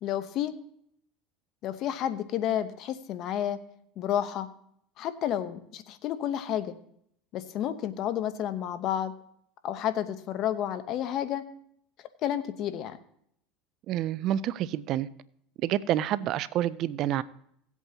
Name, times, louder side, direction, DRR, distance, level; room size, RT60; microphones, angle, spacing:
voice 1, 0.0-0.5 1.6-3.6 4.0-4.5 5.0-6.8 7.3-9.1 9.6-11.4 12.2-13.0, left 10 dB, 55° left, 0.9 m, -30 dB
voice 2, 13.9-15.1 15.6-17.2, right 12 dB, 55° right, 0.4 m, -28 dB
17.5 x 8.1 x 2.9 m
supercardioid pair, 105°, 0 cm